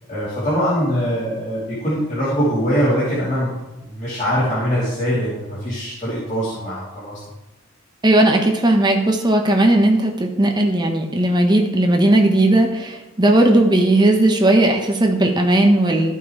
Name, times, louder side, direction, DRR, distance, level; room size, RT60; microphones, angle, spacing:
voice 1, 0.1-3.6 3.8-7.2, equal, 35° left, -10 dB, 3.0 m, -22 dB
voice 2, 8.0-16.2, right 1 dB, 20° right, 2 dB, 1.0 m, -16 dB
14.5 x 5.4 x 3.2 m, 1.1 s
head